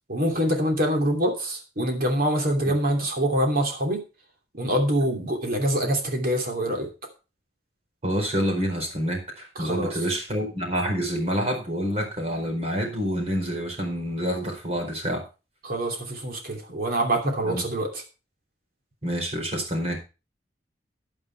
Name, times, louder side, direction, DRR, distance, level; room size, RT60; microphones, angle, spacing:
voice 1, 0.1-4.0 4.6-6.9 9.6-9.9 15.6-18.0, right 1 dB, 55° right, 3 dB, 2.9 m, -25 dB
voice 2, 8.0-15.2 17.4-17.6 19.0-20.0, equal, 35° right, 2 dB, 4.6 m, -27 dB
10.5 x 9.4 x 4.5 m, 0.31 s
head